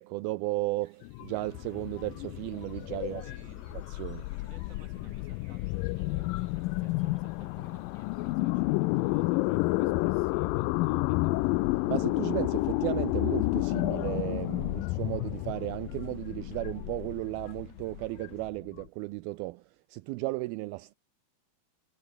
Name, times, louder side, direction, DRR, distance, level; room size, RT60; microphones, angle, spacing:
voice 1, 0.0-3.2 3.9-4.3 11.9-20.9, right 20 dB, 80° right, 2.4 m, -34 dB
sound 1, 0.8-8.4, right 4 dB, 55° right, 8.1 m, -66 dB
sound 2, 1.0-18.8, left 21 dB, 85° left, 2.0 m, -30 dB
sound 3, 1.3-18.5, left 6 dB, 40° left, 2.2 m, -62 dB
voice 2, 2.9-3.7 4.3-11.4, right 4 dB, 20° right, 3.2 m, -56 dB
omnidirectional pair, 4.6 m